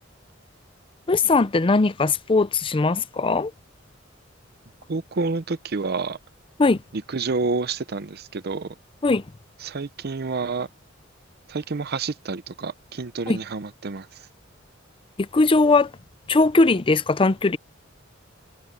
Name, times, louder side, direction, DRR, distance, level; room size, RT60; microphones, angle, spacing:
voice 1, 1.1-3.5 6.6-6.8 9.0-9.2 13.3-13.4 15.3-15.9 16.3-17.6, left 3 dB, 25° left, 0.5 m, -19 dB
voice 2, 4.9-6.2 6.9-8.7 9.6-10.7 11.5-14.1, right 4 dB, 55° right, 0.7 m, -28 dB
head